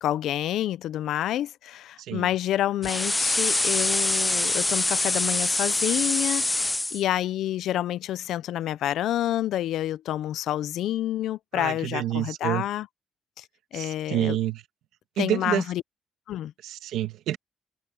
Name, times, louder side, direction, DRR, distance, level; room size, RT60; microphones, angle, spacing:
voice 1, 0.0-12.9 13.4-13.5 13.7-14.4 15.2-15.8 16.3-16.5, left 12 dB, 80° left, 0.6 m, -28 dB
sound 1, 2.8-7.0, left 2 dB, 15° left, 0.6 m, -25 dB
voice 2, 11.5-12.6 13.7-14.6 15.2-15.6 16.6-17.4, right 12 dB, 85° right, 1.7 m, -28 dB
cardioid pair, 90°, 0 cm